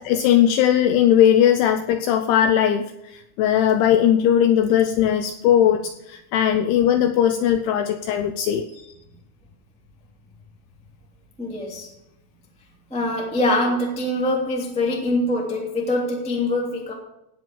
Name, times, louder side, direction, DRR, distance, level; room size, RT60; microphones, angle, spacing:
voice 1, 0.0-8.7, left 10 dB, 85° left, 8 dB, 2.7 m, -19 dB
voice 2, 11.4-11.9 12.9-16.9, left 1 dB, 10° left, -1 dB, 0.3 m, -24 dB
17.5 x 5.9 x 7.1 m, 0.85 s
omnidirectional pair, 6.0 m